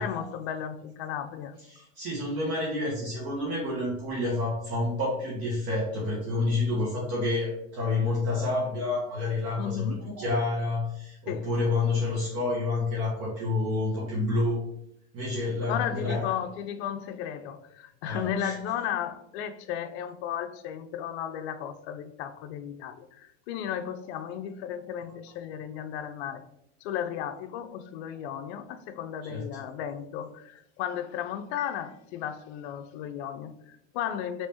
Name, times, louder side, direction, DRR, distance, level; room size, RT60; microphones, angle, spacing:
voice 1, 0.0-1.6 9.6-10.0 11.3-11.5 15.7-26.4 26.8-34.5, left 9 dB, 65° left, 0.5 m, -34 dB
voice 2, 1.7-14.6 15.1-16.2 18.0-18.5 29.2-29.4, left 2 dB, 45° right, 1.3 m, -29 dB
3.3 x 3.0 x 2.8 m
supercardioid pair, 110°, 35 cm